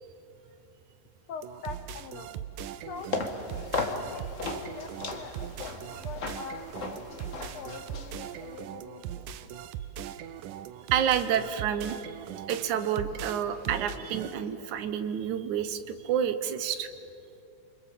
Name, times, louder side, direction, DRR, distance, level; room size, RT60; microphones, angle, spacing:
voice 1, 1.3-2.5 2.7-3.2 3.5-9.6, left 6 dB, 85° left, 8 dB, 1.2 m, -44 dB
sound 1, 1.4-14.3, right 9 dB, 85° right, 2.4 m, -40 dB
sound 2, 3.0-8.6, left 3 dB, 35° left, 1.3 m, -36 dB
voice 2, 10.9-12.0 12.5-16.9, right 9 dB, 70° right, 10 dB, 2.3 m, -29 dB
sound 3, 12.0-15.8, equal, 5° left, 3.3 m, -54 dB
28.5 x 25.0 x 7.5 m, 2.7 s
omnidirectional pair, 3.7 m